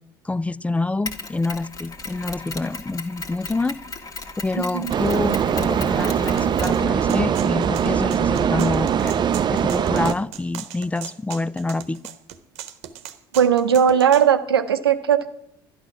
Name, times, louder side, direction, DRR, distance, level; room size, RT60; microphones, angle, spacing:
voice 1, 0.2-3.8 4.4-9.1 9.5-12.0, left 2 dB, 10° left, 19 dB, 0.4 m, -27 dB
Mechanisms, 1.1-7.4, left 3 dB, 30° left, 1.8 m, -36 dB
sound 1, 4.9-10.1, right 8 dB, 35° right, 0.6 m, -21 dB
sound 2, 6.4-14.3, right 11 dB, 60° right, 1.0 m, -38 dB
voice 2, 13.3-15.3, right 8 dB, 90° right, 10 dB, 0.8 m, -18 dB
11.5 x 11.5 x 5.9 m, 0.79 s
hypercardioid pair, 65°, 12 cm